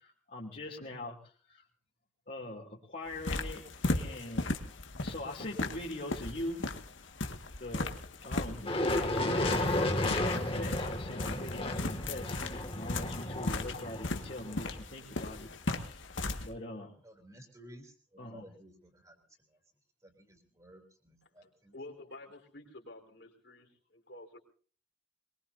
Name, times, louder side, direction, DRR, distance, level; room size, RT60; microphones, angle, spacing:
voice 1, 0.0-1.6 2.3-3.6 3.9-4.5 5.0-6.6 7.6-7.9 8.2-16.1 16.4-16.9 18.2-18.5, left 1 dB, 50° left, -4 dB, 3.0 m, -42 dB
sound 1, 3.1-16.5, left 2 dB, 90° left, 1.9 m, -37 dB
sound 2, 8.7-14.8, left 1 dB, 30° left, 2.2 m, -33 dB
voice 2, 17.0-19.2 20.0-21.7, right 1 dB, 20° right, 2 dB, 3.4 m, -55 dB
voice 3, 21.7-24.4, left 2 dB, 65° left, 0 dB, 4.3 m, -50 dB
23.0 x 22.5 x 2.8 m, 0.42 s
head